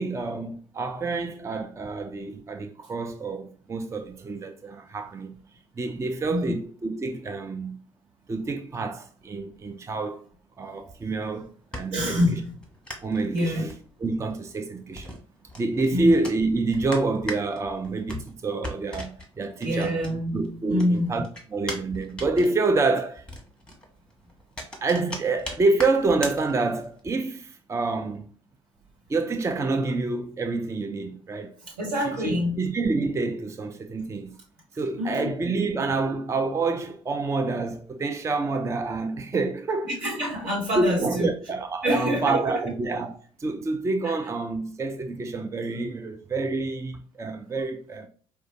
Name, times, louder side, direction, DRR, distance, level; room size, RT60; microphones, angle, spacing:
voice 1, 0.0-5.3 5.8-7.8 8.3-10.2 10.6-12.4 13.0-13.7 14.0-15.1 15.6-20.0 20.3-23.2 24.8-28.3 29.1-31.5 32.1-34.3 34.7-40.0 40.8-48.1, right 3 dB, 20° right, 0.4 m, -27 dB
sound 1, 11.3-20.5 20.7-27.0, left 1 dB, 5° left, 1.2 m, -40 dB
voice 2, 11.9-12.5 13.3-13.6 15.9-16.1 19.6-21.1 31.8-32.7 35.0-35.7 39.8-41.3 41.8-42.6 44.0-44.1 47.4-47.5, equal, 65° right, 1.4 m, -26 dB
4.7 x 2.2 x 2.9 m
figure-of-eight pair, 50°, 16 cm